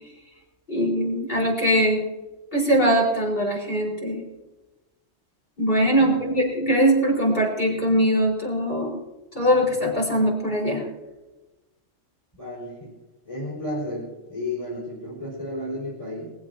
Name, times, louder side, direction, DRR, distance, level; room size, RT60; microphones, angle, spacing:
voice 1, 0.7-2.1 2.5-4.2 5.6-9.0 9.3-10.9, equal, 45° left, -2 dB, 4.7 m, -21 dB
voice 2, 6.0-6.3 12.4-12.9 13.2-16.3, left 1 dB, 25° left, -5 dB, 5.2 m, -33 dB
21.0 x 15.5 x 2.8 m, 1.1 s
omnidirectional pair, 1.3 m